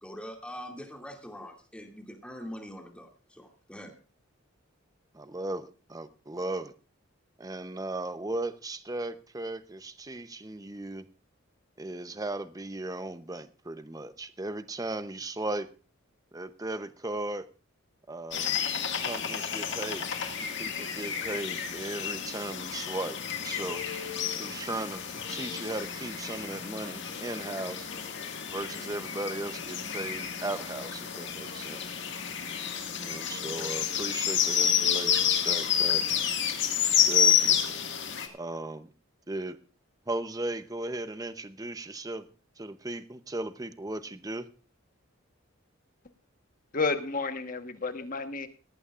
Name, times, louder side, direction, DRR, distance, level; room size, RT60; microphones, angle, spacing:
voice 1, 0.0-3.9, equal, 5° left, 2 dB, 2.3 m, -43 dB
voice 2, 5.1-6.7 7.4-11.1 11.8-15.7 16.3-17.5 18.1-18.6 19.0-20.1 20.6-23.8 24.4-27.9 28.5-31.8 32.9-36.0 37.1-37.8 38.3-38.9 39.3-39.6 40.1-42.3 42.6-44.5, right 2 dB, 15° right, 11 dB, 0.7 m, -37 dB
sound 1, 18.3-38.3, left 8 dB, 60° left, 2.0 m, -30 dB
voice 3, 46.7-48.5, left 4 dB, 40° left, 8 dB, 1.3 m, -31 dB
18.0 x 14.5 x 2.5 m, 0.35 s
head